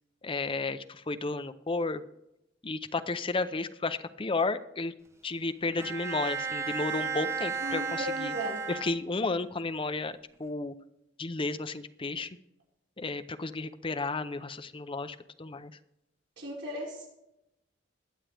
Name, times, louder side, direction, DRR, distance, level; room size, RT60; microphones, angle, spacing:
voice 1, 0.2-2.0 2.6-4.9 5.2-8.3 8.7-10.7 11.2-12.4 13.0-15.7, left 3 dB, 30° left, 10 dB, 0.6 m, -33 dB
Bowed string instrument, 5.8-9.4, right 6 dB, 15° right, 0.9 m, -34 dB
voice 2, 7.6-8.6 16.4-17.1, equal, 75° right, -4 dB, 5.6 m, -36 dB
21.5 x 7.5 x 3.4 m, 0.84 s
head